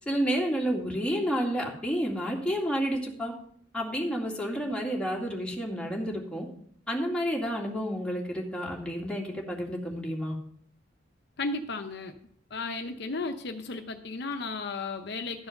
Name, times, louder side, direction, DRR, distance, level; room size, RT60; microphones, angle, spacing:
voice 1, 0.1-3.3 3.7-6.5 6.9-10.4, equal, 5° left, -2 dB, 2.3 m, -30 dB
voice 2, 11.4-12.1 12.5-15.5, left 3 dB, 60° left, 6 dB, 0.8 m, -34 dB
12.5 x 4.8 x 6.6 m, 0.62 s
head